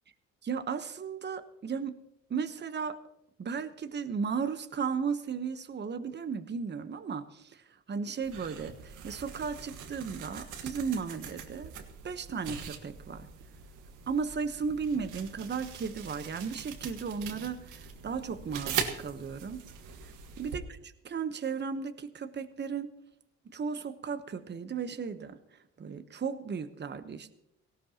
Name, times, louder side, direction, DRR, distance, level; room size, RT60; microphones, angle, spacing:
voice 1, 0.4-2.0 2.3-3.0 3.4-7.6 7.9-11.7 12.0-13.3 14.1-19.6 20.4-22.9 23.4-25.4 25.8-27.3, right 6 dB, 35° right, 9 dB, 1.0 m, -35 dB
sound 1, 8.2-20.6, right 7 dB, 90° right, 1.6 m, -41 dB
18.0 x 16.5 x 2.9 m, 0.81 s
cardioid pair, 90°, 30 cm